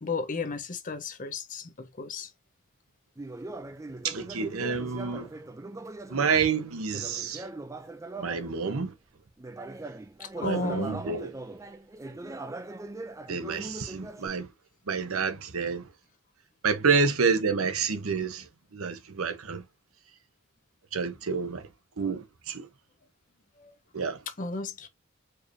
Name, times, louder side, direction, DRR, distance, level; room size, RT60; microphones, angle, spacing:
voice 1, 0.0-2.3 10.2-11.0 23.6-23.7 24.3-24.9, left 3 dB, 40° left, 0.6 m, -34 dB
Conversation, 3.2-8.9 9.4-14.3, right 2 dB, 15° right, 0.3 m, -41 dB
voice 2, 4.0-5.3 6.1-7.5 8.2-8.9 10.4-11.3 13.3-14.5 14.9-15.9 16.6-19.6 20.9-21.7 22.0-22.7 23.9-24.2, right 5 dB, 90° right, 0.8 m, -28 dB
4.5 x 3.1 x 2.5 m
head